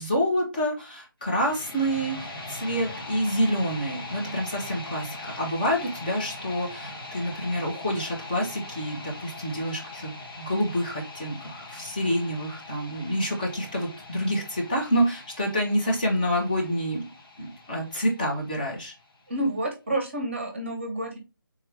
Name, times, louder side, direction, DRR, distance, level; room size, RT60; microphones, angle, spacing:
voice 1, 0.0-17.0 17.4-18.9, equal, 25° left, -2 dB, 1.0 m, -28 dB
sound 1, 1.2-19.2, left 2 dB, 85° left, 1.9 m, -41 dB
voice 2, 19.3-21.2, right 1 dB, 35° right, 3 dB, 0.8 m, -29 dB
3.5 x 2.9 x 3.4 m, 0.28 s
figure-of-eight pair, 155°, 12 cm